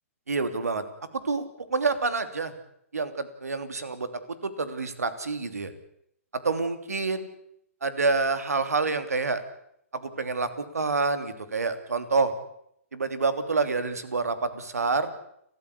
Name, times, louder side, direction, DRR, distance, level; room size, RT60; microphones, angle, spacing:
voice 1, 0.3-0.8 1.2-1.4 1.7-2.5 2.9-4.1 4.4-5.7 6.4-7.3 7.8-9.4 9.9-12.3 12.9-15.1, right 4 dB, 85° right, 11 dB, 3.0 m, -27 dB
30.0 x 14.0 x 8.4 m, 0.75 s
hypercardioid pair, 135°, 8 cm